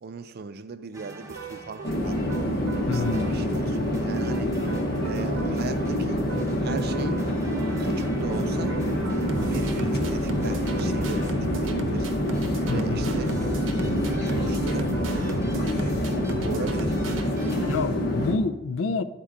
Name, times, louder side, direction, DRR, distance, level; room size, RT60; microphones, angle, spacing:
voice 1, 0.0-2.2 2.8-4.5 5.0-6.2 6.6-7.2 7.8-8.8 9.0-12.1 12.6-13.3 13.7-14.9 16.4-17.0 17.3-17.5, right 4 dB, 55° right, 0.4 m, -38 dB
sound 1, 0.9-17.9, right 1 dB, 15° right, 0.9 m, -45 dB
sound 2, 1.3-17.9, right 3 dB, 85° right, 0.7 m, -37 dB
sound 3, 1.8-18.4, equal, 55° left, 0.9 m, -26 dB
voice 2, 2.9-3.4 12.6-13.1 17.7-19.0, left 4 dB, 85° left, 0.4 m, -28 dB
10.0 x 4.5 x 3.7 m
head